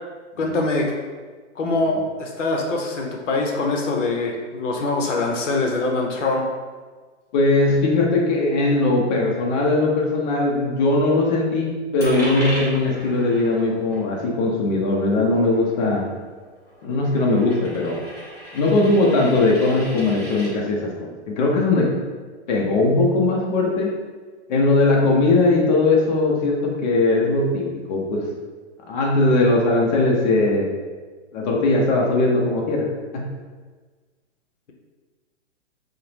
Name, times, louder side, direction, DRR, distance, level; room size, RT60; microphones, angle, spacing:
voice 1, 0.4-0.9 1.6-6.5, left 2 dB, 85° left, 0 dB, 0.6 m, -23 dB
voice 2, 7.3-16.1 16.8-18.0 18.5-22.0 22.5-23.9 24.5-28.3 28.9-30.7 31.3-33.3, left 2 dB, 40° left, -2 dB, 0.6 m, -20 dB
Coin (dropping), 12.0-20.5, equal, 5° left, 0.8 m, -37 dB
2.6 x 2.1 x 3.1 m, 1.4 s
hypercardioid pair, 130°, 36 cm